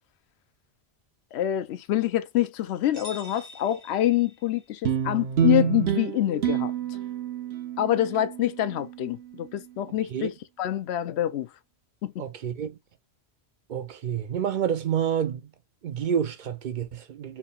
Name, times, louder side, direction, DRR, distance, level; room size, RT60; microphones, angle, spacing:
voice 1, 1.3-6.7 7.8-10.3 10.6-11.5 12.0-12.1, left 13 dB, 80° left, 0.9 m, -26 dB
sound 1, 2.9-4.7, left 1 dB, 40° right, 2.1 m, -46 dB
sound 2, 4.9-9.5, right 8 dB, 80° right, 0.9 m, -28 dB
voice 2, 9.9-10.3 12.2-12.8 13.7-15.5 15.8-17.4, right 8 dB, 60° right, 0.6 m, -29 dB
4.3 x 3.6 x 2.3 m
omnidirectional pair, 1.1 m